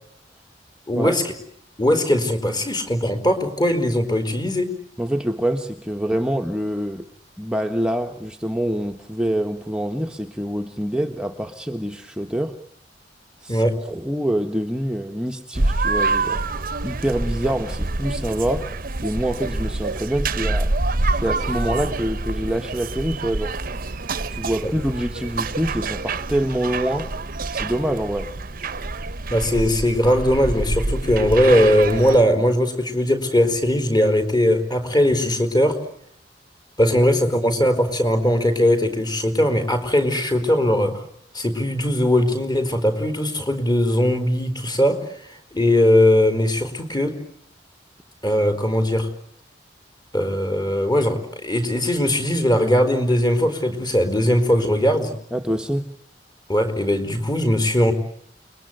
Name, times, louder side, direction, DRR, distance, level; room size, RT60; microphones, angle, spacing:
voice 1, 0.9-1.3 1.8-4.7 13.5-13.8 24.6-24.7 29.3-35.8 36.8-41.0 41.3-45.1 45.5-47.2 48.2-49.1 50.1-55.1 56.5-57.9, left 1 dB, 25° left, 8 dB, 4.8 m, -19 dB
voice 2, 5.0-7.0 7.4-12.6 13.4-16.4 16.8-18.7 19.0-20.7 21.1-23.6 24.1-27.1 27.5-28.3 36.8-36.9 55.3-55.9, equal, 5° right, 4 dB, 1.4 m, -25 dB
sound 1, 15.5-32.2, right 3 dB, 50° right, 1.1 m, -26 dB
29.5 x 22.0 x 9.2 m, 0.70 s
head